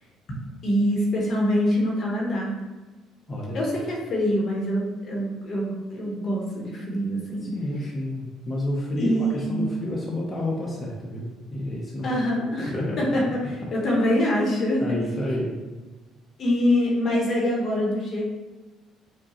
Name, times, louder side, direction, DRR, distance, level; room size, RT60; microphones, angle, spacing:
voice 1, 0.6-2.5 3.5-7.5 9.0-9.7 12.0-14.8 16.4-18.2, equal, 50° left, -2 dB, 1.0 m, -24 dB
voice 2, 3.3-3.6 7.4-12.1 12.6-13.0 14.8-15.5, left 1 dB, 20° left, -4 dB, 0.7 m, -30 dB
4.7 x 2.2 x 2.9 m, 1.2 s
cardioid pair, 90°, 0 cm